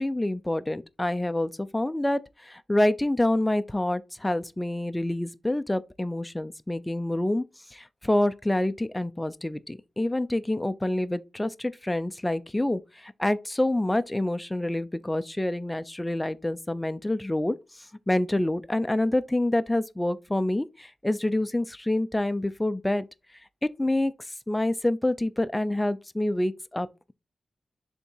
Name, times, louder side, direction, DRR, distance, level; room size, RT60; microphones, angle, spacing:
voice 1, 0.0-7.4 7.7-23.1 23.6-27.1, left 1 dB, 10° left, 0.5 m, -27 dB
6.9 x 3.6 x 4.4 m
wide cardioid pair, 145°, 0 cm